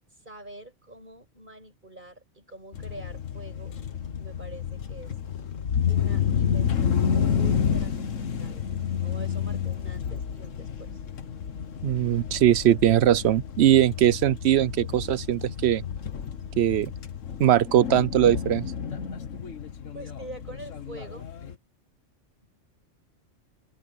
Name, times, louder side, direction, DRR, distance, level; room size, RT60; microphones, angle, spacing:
voice 1, 0.1-3.7 4.2-5.2 5.9-8.6 9.0-11.0 19.9-21.3, right 2 dB, 40° right, 7.6 m, -45 dB
sound 1, 2.7-21.5, left 8 dB, 85° left, 1.6 m, -30 dB
voice 2, 11.8-15.8 16.6-16.9 17.4-18.7, right 11 dB, 65° right, 0.9 m, -21 dB
open air
omnidirectional pair, 1.3 m